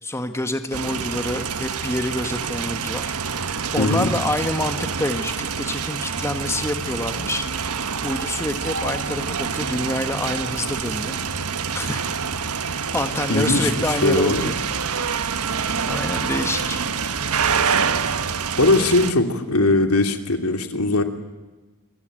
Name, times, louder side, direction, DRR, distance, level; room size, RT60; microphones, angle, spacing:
voice 1, 0.0-7.5 8.0-11.2 11.7-12.0 12.7-14.5 15.1-15.2 15.9-16.8, left 1 dB, 10° left, 8 dB, 1.4 m, -27 dB
sound 1, 0.7-19.1, right 6 dB, 90° right, 1.4 m, -26 dB
voice 2, 3.8-4.1 13.3-14.5 18.6-21.0, left 2 dB, 80° left, 7 dB, 2.8 m, -20 dB
27.5 x 23.5 x 9.1 m, 1.2 s
head